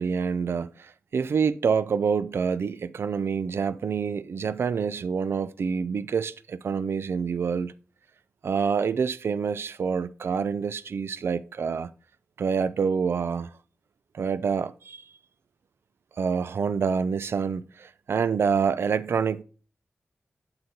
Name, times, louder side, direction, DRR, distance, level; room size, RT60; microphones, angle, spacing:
voice 1, 0.0-7.8 8.4-11.9 12.4-13.5 14.1-15.1 16.2-19.4, right 6 dB, 80° right, 0.3 m, -27 dB
7.9 x 7.8 x 2.8 m
wide cardioid pair, 130°, 4 cm